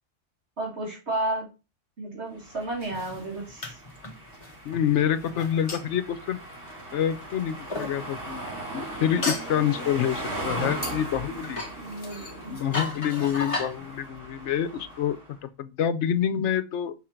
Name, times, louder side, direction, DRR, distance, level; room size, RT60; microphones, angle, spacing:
voice 1, 0.6-1.5 2.0-3.8 11.3-12.6, right 2 dB, 65° right, 2.3 m, -33 dB
sound 1, 2.4-15.4, right 1 dB, 50° right, 4.2 m, -39 dB
sound 2, 2.8-7.1 7.7-8.0 9.2-9.6 10.8-13.7, left 2 dB, 30° left, 1.0 m, -34 dB
voice 2, 4.6-6.4 6.9-8.4 8.7-11.6 12.5-16.9, left 9 dB, 75° left, 1.0 m, -27 dB
5.8 x 3.7 x 4.4 m
omnidirectional pair, 1.2 m